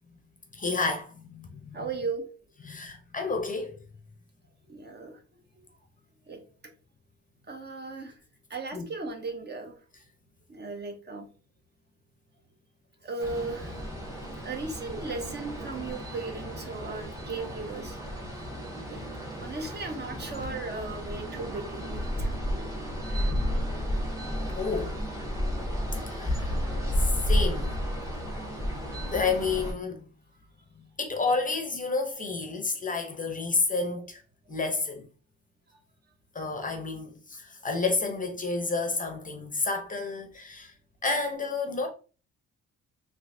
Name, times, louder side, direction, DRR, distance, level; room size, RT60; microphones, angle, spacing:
voice 1, 0.5-1.9 2.7-3.8 8.7-8.8 24.6-25.0 25.9-26.5 26.9-27.7 29.1-30.1 31.0-34.2 34.5-35.1 36.3-40.7 41.0-41.9, left 4 dB, 25° left, 0.6 m, -30 dB
voice 2, 1.7-2.3 4.7-5.2 5.6-5.7 6.3-6.4 7.5-8.2 8.5-9.8 10.5-11.3 13.0-13.8 14.4-18.1 18.9-19.0 19.4-22.3 35.7-35.8, right 3 dB, 35° right, 0.8 m, -36 dB
sound 1, 13.2-29.7, equal, 10° right, 1.2 m, -32 dB
3.1 x 3.1 x 2.6 m
cardioid pair, 90°, 30 cm